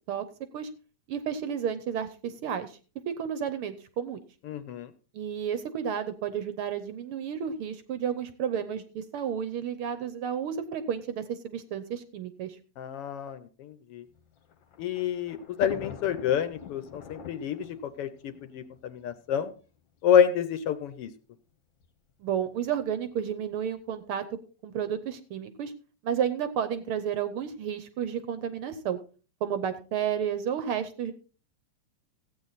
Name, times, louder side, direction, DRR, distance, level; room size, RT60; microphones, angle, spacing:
voice 1, 1.1-2.7 3.1-4.2 5.1-12.6 22.2-24.2 24.6-25.7 26.0-29.0 29.4-31.1, right 8 dB, 70° right, 12 dB, 1.3 m, -31 dB
voice 2, 4.4-4.9 12.8-14.0 14.8-18.1 18.5-19.5 20.0-21.1, left 8 dB, 70° left, 11 dB, 1.4 m, -28 dB
Thunder, 14.2-19.5 20.3-20.4 20.6-20.7 21.8-22.1, left 7 dB, 55° left, 1.4 m, -45 dB
15.0 x 8.6 x 4.1 m, 0.37 s
omnidirectional pair, 3.3 m